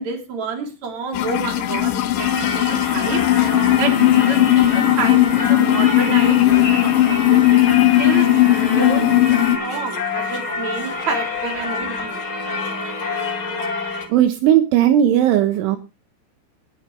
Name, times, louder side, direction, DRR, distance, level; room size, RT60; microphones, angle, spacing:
voice 1, 0.0-3.2 3.8-7.7 8.0-8.3 8.7-12.2, right 4 dB, 40° right, 2 dB, 4.2 m, -28 dB
sound 1, 1.1-9.6, left 13 dB, 75° left, 2.1 m, -17 dB
Singing / Church bell, 2.2-14.1, left 4 dB, 35° left, 2.2 m, -27 dB
voice 2, 14.1-15.8, right 11 dB, 80° right, 6 dB, 3.6 m, -16 dB
20.5 x 9.2 x 3.2 m, 0.28 s
omnidirectional pair, 5.6 m